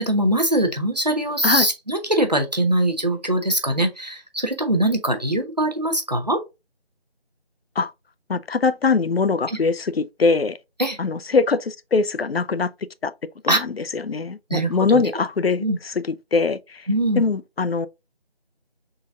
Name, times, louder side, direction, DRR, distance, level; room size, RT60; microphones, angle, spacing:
voice 1, 0.0-6.4 9.5-9.6 10.8-11.0 13.5-13.6 14.5-14.8 15.6-15.8 16.9-17.2, right 1 dB, 40° right, 0.7 m, -22 dB
voice 2, 8.3-10.6 11.0-12.7 13.0-13.1 13.4-16.8 17.2-17.9, left 4 dB, 70° left, 0.5 m, -22 dB
5.2 x 3.8 x 2.5 m
figure-of-eight pair, 170°, 31 cm